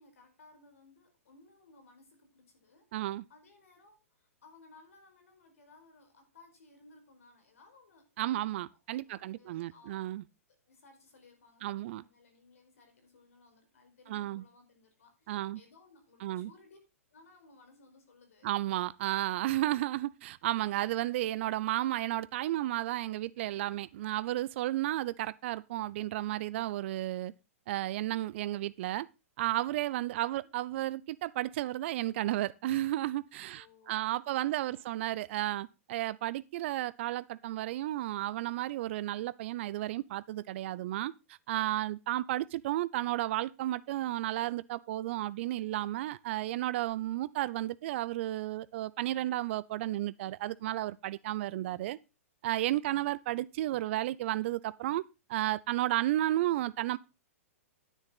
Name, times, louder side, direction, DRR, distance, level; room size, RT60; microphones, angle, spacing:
voice 1, 0.0-8.7 8.9-10.1 10.5-16.8 17.1-18.6 30.2-30.5 33.5-34.9 53.0-53.1, left 3 dB, 70° left, 4.8 m, -61 dB
voice 2, 2.9-3.2 8.2-10.2 11.6-12.0 14.1-14.4 15.3-15.6 16.2-16.5 18.4-27.3 27.7-29.1 29.4-52.0 52.4-55.0 55.3-57.0, right 15 dB, 55° right, 0.6 m, -33 dB
10.0 x 9.8 x 3.9 m
hypercardioid pair, 115°, 8 cm